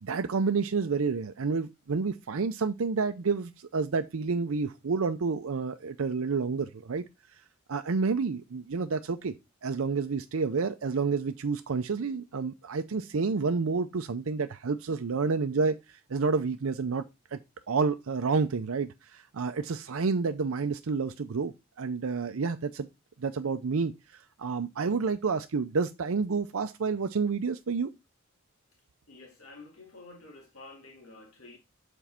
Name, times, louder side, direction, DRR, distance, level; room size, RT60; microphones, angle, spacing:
voice 1, 0.0-7.0 7.7-9.3 9.6-17.0 17.3-17.4 17.7-22.9 23.2-23.9 24.4-27.9, right 4 dB, 80° right, 0.5 m, -29 dB
voice 2, 29.1-31.6, left 3 dB, 90° left, 2.3 m, -50 dB
7.2 x 4.5 x 4.3 m
head